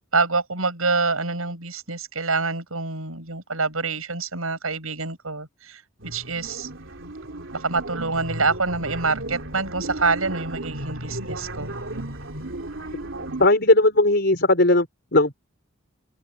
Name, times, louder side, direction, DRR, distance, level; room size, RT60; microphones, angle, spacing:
voice 1, 0.1-6.7 7.5-11.7, right 3 dB, 80° right, 7.2 m, -26 dB
sound 1, 6.0-13.5, right 1 dB, 65° right, 3.5 m, -35 dB
voice 2, 13.4-15.3, left 2 dB, 50° left, 5.2 m, -18 dB
head